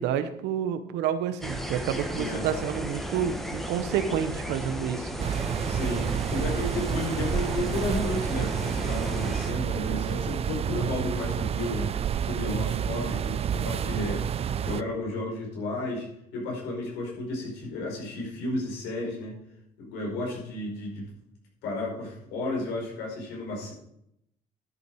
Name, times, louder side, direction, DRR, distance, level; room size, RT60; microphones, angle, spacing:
voice 1, 0.0-5.3, right 9 dB, 90° right, 11 dB, 1.1 m, -29 dB
sound 1, 1.4-9.5, equal, ahead, 1.4 m, -35 dB
voice 2, 2.1-2.4 5.7-19.3 19.8-21.1 21.6-23.7, left 2 dB, 90° left, -2 dB, 5.0 m, -33 dB
sound 2, 5.2-14.8, right 9 dB, 35° right, 0.4 m, -29 dB
12.5 x 8.2 x 4.7 m, 0.78 s
cardioid pair, 110°, 17 cm